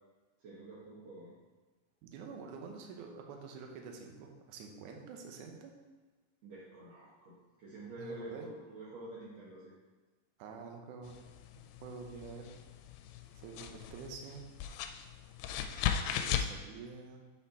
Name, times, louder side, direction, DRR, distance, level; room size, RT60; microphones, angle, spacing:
voice 1, 0.4-1.3 6.4-9.7, right 1 dB, 60° right, -9 dB, 2.0 m, -48 dB
voice 2, 2.0-5.7 8.0-8.5 10.4-11.2 11.8-12.5 13.4-14.5 16.0-17.2, right 5 dB, 75° right, 2 dB, 2.0 m, -47 dB
sound 1, 11.0-16.6, left 9 dB, 85° left, 2.4 m, -38 dB
8.4 x 4.3 x 4.2 m, 1.3 s
omnidirectional pair, 4.4 m